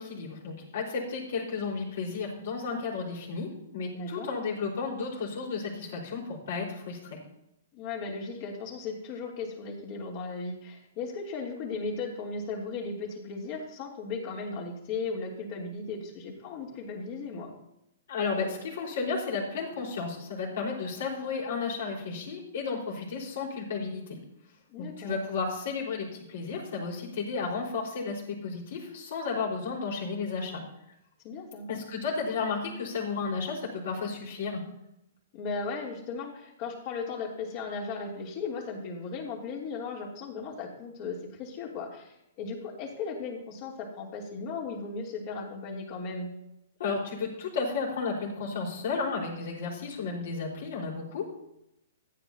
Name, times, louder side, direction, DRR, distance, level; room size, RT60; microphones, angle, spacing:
voice 1, 0.0-7.2 18.1-24.2 24.8-30.6 31.7-34.6 46.8-51.3, left 4 dB, 65° left, -1 dB, 4.7 m, -33 dB
voice 2, 3.9-4.3 7.7-17.5 24.7-25.2 31.2-31.7 35.3-46.3, left 4 dB, 40° left, -1 dB, 3.2 m, -36 dB
15.0 x 9.6 x 2.9 m, 0.81 s
hypercardioid pair, 120°, 0 cm